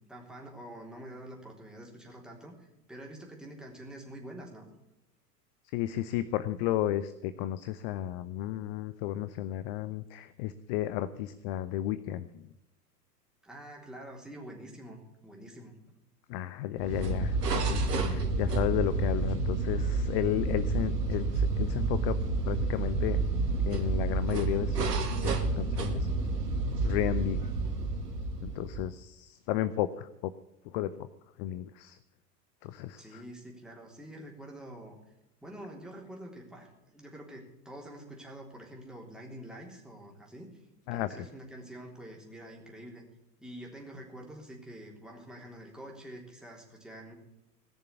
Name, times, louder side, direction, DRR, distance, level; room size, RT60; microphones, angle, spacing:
voice 1, 0.1-4.7 13.4-16.0 33.0-35.0 35.4-40.6 40.9-43.1 43.4-47.1, right 1 dB, ahead, -2 dB, 3.5 m, -46 dB
voice 2, 5.7-12.5 16.3-23.2 23.6-24.8 25.1-26.1 26.8-27.4 28.4-30.3 30.7-31.1 31.4-32.0 32.6-33.2 40.9-41.2, left 13 dB, 35° left, 14 dB, 0.6 m, -33 dB
sound 1, 16.8-29.0, right 3 dB, 75° right, 1.9 m, -30 dB
18.5 x 6.8 x 8.4 m, 0.93 s
figure-of-eight pair, 95°, 48 cm